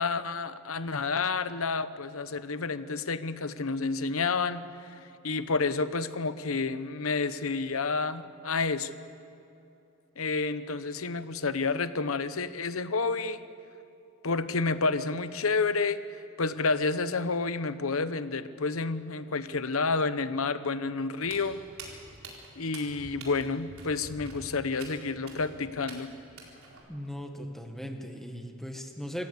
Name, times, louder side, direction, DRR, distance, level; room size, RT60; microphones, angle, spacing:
voice 1, 0.0-8.9 10.2-13.4 14.2-16.0 16.4-21.6 22.6-26.1, left 4 dB, 85° left, 13 dB, 1.0 m, -30 dB
Walk footsteps, 21.2-26.8, right 2 dB, 80° right, 4.5 m, -47 dB
voice 2, 26.9-29.3, equal, ahead, 3 dB, 1.8 m, -38 dB
26.0 x 15.0 x 8.5 m, 2.8 s
head